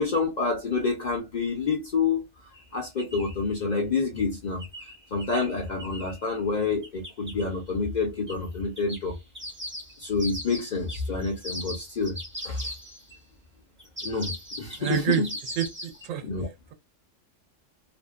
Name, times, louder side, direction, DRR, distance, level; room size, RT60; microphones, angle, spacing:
voice 1, 0.0-2.2 2.7-4.6 5.1-9.1 10.0-12.2 12.4-12.7 14.0-15.2 16.2-16.5, left 4 dB, 55° left, 0.5 m, -28 dB
sound 1, 2.5-2.6 3.0-3.4 4.6-6.2 6.8-7.4 8.3-8.4 8.8-13.2 13.8-16.1, equal, 15° right, 0.4 m, -39 dB
voice 2, 14.8-15.2 15.6-16.2, right 9 dB, 90° right, 1.0 m, -27 dB
2.6 x 2.1 x 2.3 m
omnidirectional pair, 1.3 m